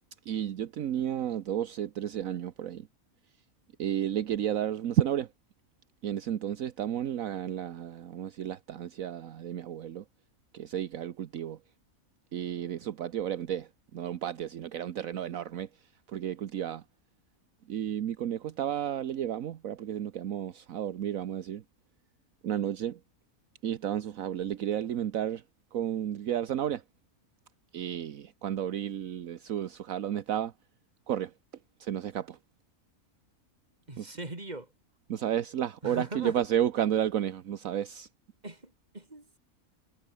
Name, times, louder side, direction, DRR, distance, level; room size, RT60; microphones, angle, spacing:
voice 1, 0.3-2.9 3.8-5.3 6.0-10.0 10.5-11.6 12.3-15.7 16.1-16.8 17.7-21.6 22.4-23.0 23.6-25.4 25.7-26.8 27.7-30.5 31.1-31.3 31.8-32.4 34.0-34.1 35.1-38.1, right 10 dB, 70° right, 1.3 m, -32 dB
voice 2, 33.9-34.7 35.8-36.4 38.4-39.4, right 2 dB, 30° right, 3.6 m, -40 dB
omnidirectional pair, 1.5 m